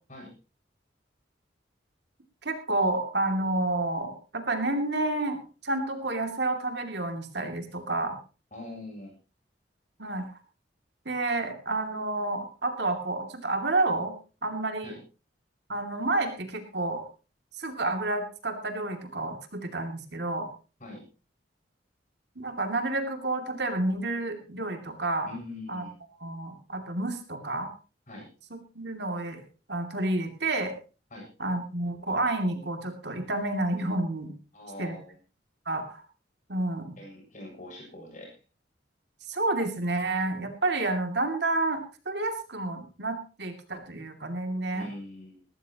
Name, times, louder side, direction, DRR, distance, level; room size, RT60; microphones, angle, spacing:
voice 1, 2.4-8.2 10.0-10.2 11.0-14.1 14.4-14.9 15.7-17.0 17.6-20.5 22.4-25.3 25.7-25.8 26.2-27.7 28.7-29.4 29.7-30.7 31.4-34.3 34.8-34.9 35.7-36.0 36.5-37.0 39.3-44.9, right 2 dB, 65° right, 5 dB, 2.7 m, -30 dB
voice 2, 8.5-9.1 14.8-15.0 20.8-21.0 25.3-25.9 28.1-28.3 31.1-31.3 34.5-35.2 37.0-38.3 44.7-45.4, left 1 dB, 45° left, 1 dB, 7.6 m, -42 dB
20.0 x 14.0 x 3.0 m, 0.34 s
head